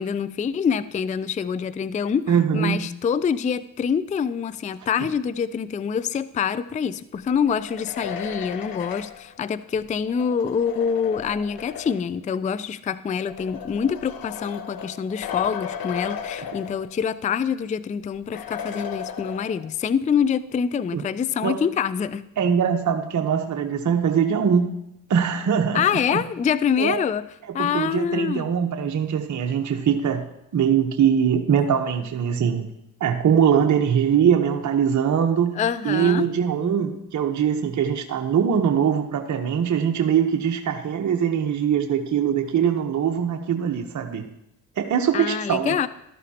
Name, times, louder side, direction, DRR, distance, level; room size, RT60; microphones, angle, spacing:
voice 1, 0.0-22.2 25.7-27.3 27.5-28.5 35.6-36.3 45.1-45.9, left 7 dB, 20° left, 16 dB, 0.4 m, -25 dB
voice 2, 2.3-2.8 20.9-21.0 21.4-21.6 22.4-24.7 25.1-25.8 26.1-26.2 26.8-26.9 27.6-30.2 30.5-32.6 33.0-35.5 35.8-44.2 44.8-45.8, right 8 dB, 50° right, 4 dB, 1.0 m, -22 dB
sound 1, 7.5-12.2 13.1-17.3 17.6-17.7 18.3-19.9, left 8 dB, 65° left, 1.1 m, -35 dB
13.5 x 12.0 x 2.9 m, 0.82 s
supercardioid pair, 60°, 38 cm